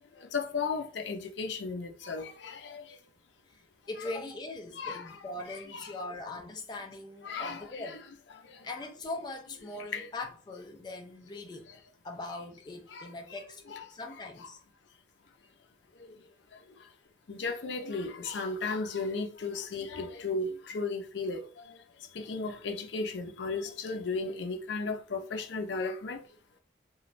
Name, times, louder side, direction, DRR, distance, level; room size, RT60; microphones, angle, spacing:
voice 1, 0.3-2.8 4.0-4.1 4.7-5.9 7.2-8.0 9.7-10.1 12.9-13.4 13.7-13.8 14.4-14.5 16.0-16.1 17.3-21.5 22.1-26.2, left 4 dB, 80° left, 0.5 m, -35 dB
voice 2, 3.9-8.0 8.6-11.7 12.0-13.6 13.9-14.6, left 2 dB, 25° left, 0.3 m, -41 dB
3.1 x 2.2 x 2.5 m
head